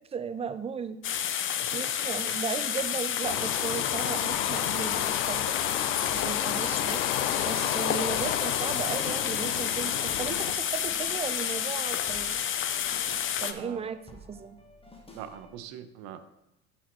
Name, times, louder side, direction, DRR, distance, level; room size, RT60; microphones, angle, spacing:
voice 1, 0.1-1.0 1.7-5.5 6.1-7.1 7.5-12.4 13.4-14.0 14.3-14.6, right 6 dB, 15° right, 12 dB, 0.4 m, -36 dB
sound 1, 1.0-13.5, left 9 dB, 30° left, 0.6 m, -30 dB
sound 2, 3.2-10.6, left 11 dB, 75° left, 0.6 m, -32 dB
sound 3, 4.3-15.6, left 1 dB, 15° left, 1.4 m, -53 dB
voice 2, 13.5-13.9 15.1-16.3, right 10 dB, 60° right, 10 dB, 0.8 m, -42 dB
11.5 x 4.3 x 3.1 m, 0.91 s
hypercardioid pair, 75°, 40 cm